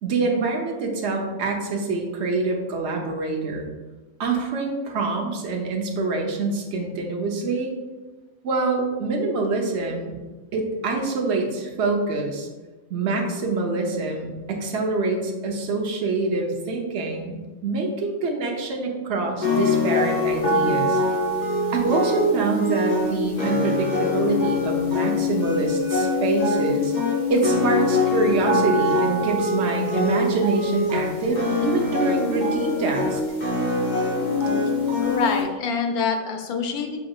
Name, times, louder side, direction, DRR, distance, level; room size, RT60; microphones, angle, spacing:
voice 1, 0.0-3.7 4.2-7.7 8.4-10.2 10.5-12.5 12.9-21.0 21.7-26.9 27.3-33.2, right 3 dB, 55° right, 2 dB, 0.9 m, -25 dB
sound 1, 19.4-35.4, left 2 dB, 30° left, 1.2 m, -23 dB
voice 2, 35.0-37.0, left 5 dB, 80° left, 4 dB, 1.1 m, -25 dB
5.6 x 3.6 x 2.3 m, 1.2 s
omnidirectional pair, 1.6 m